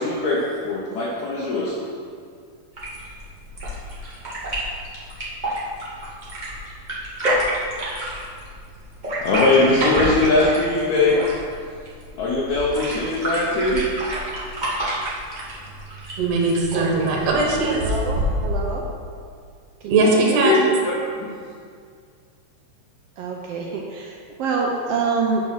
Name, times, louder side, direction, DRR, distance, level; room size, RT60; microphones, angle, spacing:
voice 1, 0.0-1.8 9.2-11.4 12.2-13.8 20.4-21.3, left 2 dB, 70° left, -6 dB, 2.3 m, -21 dB
sound 1, 2.7-18.8, equal, 30° right, 0.8 m, -28 dB
voice 2, 16.2-18.0 19.9-20.6, right 3 dB, 65° right, -2 dB, 2.3 m, -20 dB
voice 3, 17.6-18.9 19.8-20.5 23.2-25.4, right 4 dB, 80° right, -1 dB, 1.4 m, -26 dB
7.3 x 5.1 x 5.7 m, 2.2 s
omnidirectional pair, 3.5 m